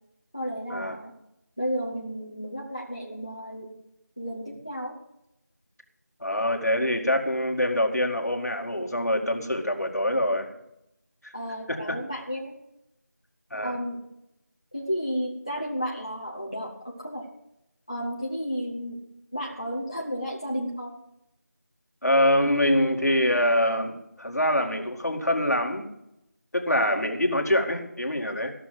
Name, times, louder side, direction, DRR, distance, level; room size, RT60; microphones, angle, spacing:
voice 1, 0.3-1.1 1.6-3.7 4.2-5.0 11.3-12.5 13.6-14.0 14.7-17.3 17.9-19.0 19.3-20.9, equal, 20° left, -4 dB, 0.9 m, -32 dB
voice 2, 6.2-10.5 11.7-12.0 13.5-13.7 22.0-25.9 26.5-28.5, left 1 dB, 60° left, 2 dB, 2.1 m, -24 dB
15.0 x 6.5 x 7.8 m, 0.84 s
figure-of-eight pair, 180°, 10 cm